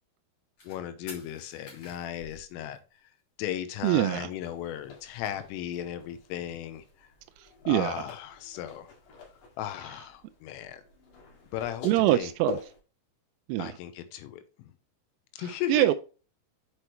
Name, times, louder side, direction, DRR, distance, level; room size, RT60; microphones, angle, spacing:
sound 1, 0.6-0.8 1.1-3.2 3.5-3.6 3.8-3.9 4.1-4.7 4.9-6.1 6.5-8.0, left 3 dB, 35° left, 3.0 m, -50 dB
voice 1, 0.7-2.8 3.4-7.1 7.7-8.9 9.6-10.8 11.5-12.3 13.6-14.7 15.4-15.9, left 11 dB, 80° left, 3.3 m, -36 dB
voice 2, 3.8-4.3 7.7-7.9 11.8-12.6 13.5-13.7 15.7-15.9, right 15 dB, 90° right, 3.3 m, -23 dB
sound 2, 4.4-12.8, left 4 dB, 55° left, 2.8 m, -44 dB
8.1 x 6.0 x 3.2 m
omnidirectional pair, 5.9 m